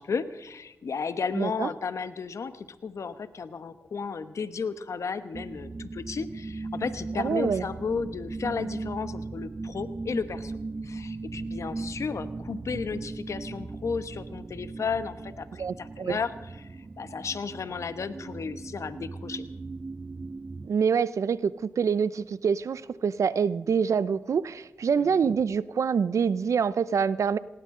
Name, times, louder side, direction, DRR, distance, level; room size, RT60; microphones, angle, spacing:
voice 1, 0.0-10.5 10.8-16.3 16.7-19.5 25.0-25.2, left 5 dB, 75° left, 12 dB, 1.1 m, -33 dB
voice 2, 1.3-1.7 7.2-7.7 15.6-16.2 20.6-27.4, right 6 dB, 80° right, 17 dB, 0.6 m, -26 dB
sound 1, 5.3-20.7, right 3 dB, 35° right, 0.6 m, -38 dB
19.5 x 18.5 x 3.8 m, 1.1 s
cardioid pair, 55°, 5 cm